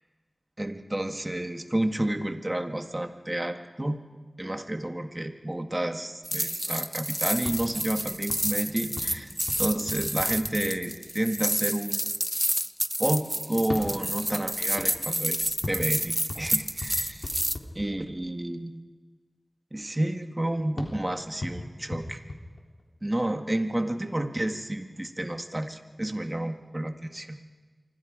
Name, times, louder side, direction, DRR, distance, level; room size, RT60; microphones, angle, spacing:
voice 1, 0.6-4.0 4.4-9.3 9.6-12.0 13.0-17.3 17.8-18.8 19.7-22.2 23.0-27.4, right 1 dB, 25° right, 6 dB, 1.7 m, -30 dB
sound 1, 6.2-17.6, equal, 10° right, 0.6 m, -29 dB
sound 2, 7.3-11.2 13.6-18.4 20.8-23.2, left 2 dB, 75° left, 3.4 m, -40 dB
27.0 x 24.5 x 5.1 m, 1.4 s
wide cardioid pair, 60°, 0 cm